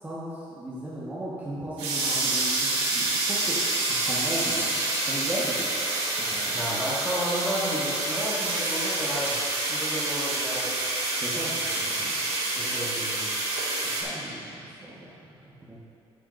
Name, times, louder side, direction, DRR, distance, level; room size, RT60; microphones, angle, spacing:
voice 1, 0.0-3.6 4.0-5.7 6.2-6.6 11.2-12.2 14.0-15.8, right 1 dB, 15° right, -8 dB, 1.4 m, -36 dB
sound 1, 1.8-14.0, right 2 dB, 85° right, 2.1 m, -28 dB
voice 2, 6.5-9.4 9.7-10.8 12.6-13.3, equal, 5° left, -7 dB, 1.9 m, -32 dB
9.4 x 8.9 x 2.6 m, 2.6 s
cardioid pair, 105°, 10 cm